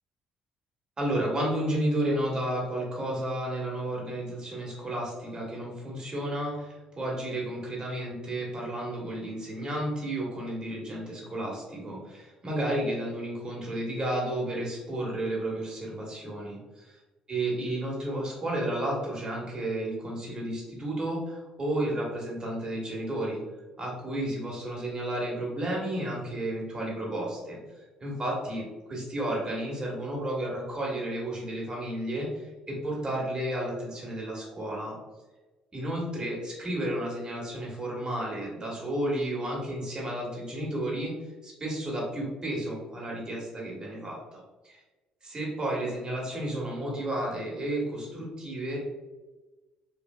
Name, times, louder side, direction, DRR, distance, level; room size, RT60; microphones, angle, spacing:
voice 1, 1.0-17.0 17.3-23.4 23.8-34.9 35.7-41.1 41.4-44.4 44.6-44.8 45.2-48.8, right 1 dB, 35° right, -3 dB, 1.4 m, -32 dB
3.2 x 2.5 x 2.3 m, 1.2 s
supercardioid pair, 65°, 3 cm